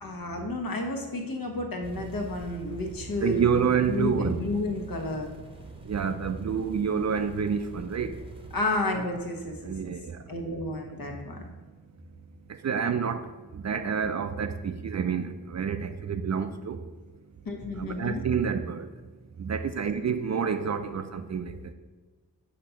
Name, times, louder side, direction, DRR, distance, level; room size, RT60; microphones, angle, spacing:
voice 1, 0.0-5.3 8.5-9.9 10.3-11.4 17.4-18.2, left 2 dB, 60° left, 2 dB, 1.2 m, -31 dB
sound 1, 1.8-8.6, right 3 dB, 15° right, 0.9 m, -44 dB
voice 2, 3.2-4.4 5.9-8.2 9.6-10.2 12.6-13.3 13.5-16.8 17.8-18.9 19.4-21.7, right 6 dB, 45° right, 9 dB, 0.5 m, -28 dB
6.3 x 2.9 x 5.7 m, 1.3 s
cardioid pair, 55°, 39 cm